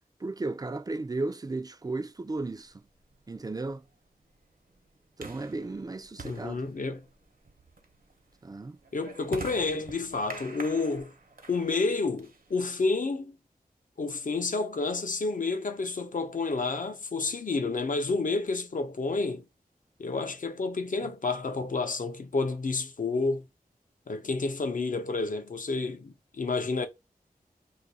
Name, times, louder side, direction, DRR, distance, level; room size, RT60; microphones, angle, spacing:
voice 1, 0.2-2.7 3.3-3.8 5.2-6.7 8.4-8.8, right 3 dB, 25° right, 0.3 m, -34 dB
sound 1, 2.5-12.9, right 3 dB, 70° right, 0.9 m, -47 dB
voice 2, 6.2-7.0 8.9-11.1 11.5-13.3 14.0-19.4 20.0-23.5 24.1-26.9, left 3 dB, 60° left, 0.6 m, -30 dB
2.6 x 2.5 x 4.0 m
wide cardioid pair, 75°, 15 cm